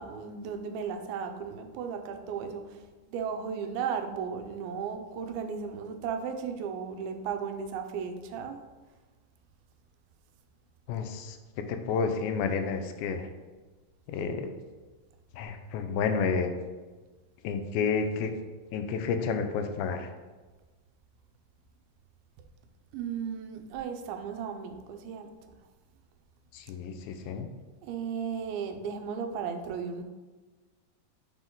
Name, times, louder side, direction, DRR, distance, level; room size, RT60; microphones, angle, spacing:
voice 1, 0.0-8.6 22.9-25.3 27.8-30.0, right 6 dB, 90° right, 6 dB, 2.5 m, -35 dB
voice 2, 10.9-11.4 11.7-13.3 14.1-14.5 15.3-16.5 17.4-18.3 18.7-20.1 26.5-27.5, left 5 dB, 85° left, 7 dB, 2.4 m, -30 dB
7.2 x 3.6 x 3.8 m, 1.3 s
omnidirectional pair, 4.2 m